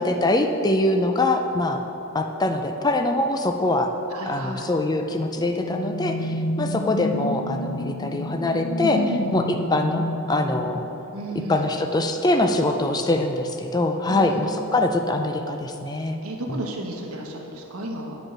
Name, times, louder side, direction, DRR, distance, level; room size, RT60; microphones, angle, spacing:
voice 1, 0.0-1.8 2.1-3.9 4.3-9.0 9.3-10.8 11.5-16.2 16.5-16.6, left 2 dB, 20° left, 5 dB, 0.4 m, -23 dB
voice 2, 4.1-4.7 8.9-9.3 11.1-11.6 14.1-14.4 15.9-18.2, right 1 dB, 80° right, 0 dB, 1.2 m, -33 dB
sound 1, 5.1-11.4, left 1 dB, 85° left, 0.7 m, -30 dB
8.7 x 5.3 x 6.0 m, 3.0 s
head